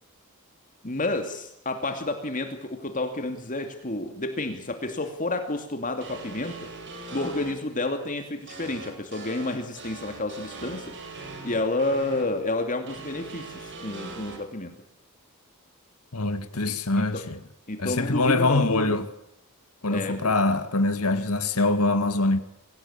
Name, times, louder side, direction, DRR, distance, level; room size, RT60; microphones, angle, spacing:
voice 1, 0.8-6.7 7.1-11.0 11.4-14.7 16.6-17.2 17.7-19.0 19.9-20.3, left 2 dB, 35° left, 2.6 m, -30 dB
sound 1, 6.0-7.5 8.5-12.2 12.9-14.4, right 3 dB, 55° right, 6.6 m, -40 dB
voice 2, 16.1-17.4 17.8-19.1 19.8-22.4, left 2 dB, 85° left, 1.9 m, -24 dB
24.0 x 17.0 x 8.8 m
head